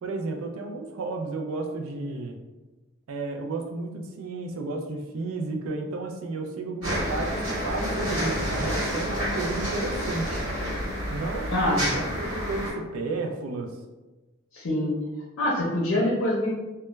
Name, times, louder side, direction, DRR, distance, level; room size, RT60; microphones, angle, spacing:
voice 1, 0.0-2.4 3.1-10.4 11.1-13.7, right 3 dB, 85° right, 3 dB, 0.4 m, -32 dB
sound 1, 6.8-12.7, equal, 65° right, 1.3 m, -29 dB
voice 2, 11.5-11.8 14.5-14.9 15.4-16.5, left 1 dB, 80° left, -4 dB, 0.5 m, -24 dB
2.2 x 2.1 x 3.0 m, 1.2 s
head